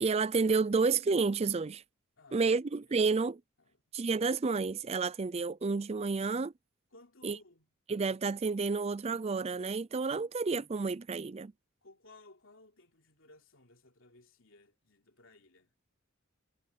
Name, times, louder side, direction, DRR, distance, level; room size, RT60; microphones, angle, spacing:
voice 1, 0.0-1.8 2.3-3.4 3.9-6.5 7.2-7.4 7.9-11.5, right 4 dB, 30° right, 0.4 m, -30 dB
voice 2, 2.2-2.5 2.9-3.0 3.6-3.8 6.9-7.7 11.8-15.7, left 2 dB, 65° left, 3.4 m, -59 dB
head